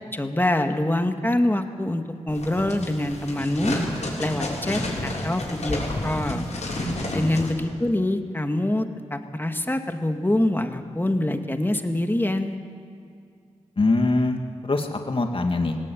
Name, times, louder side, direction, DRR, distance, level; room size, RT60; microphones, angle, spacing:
voice 1, 0.1-3.8 4.2-6.4 7.1-8.9 9.1-12.6, left 1 dB, 15° left, 6 dB, 2.3 m, -25 dB
sound 1, 2.3-7.5, left 1 dB, 70° left, 7.1 m, -30 dB
voice 2, 13.8-15.8, left 2 dB, 45° left, 4 dB, 2.2 m, -23 dB
18.5 x 17.5 x 9.4 m, 2.3 s
cardioid pair, 40°, 12 cm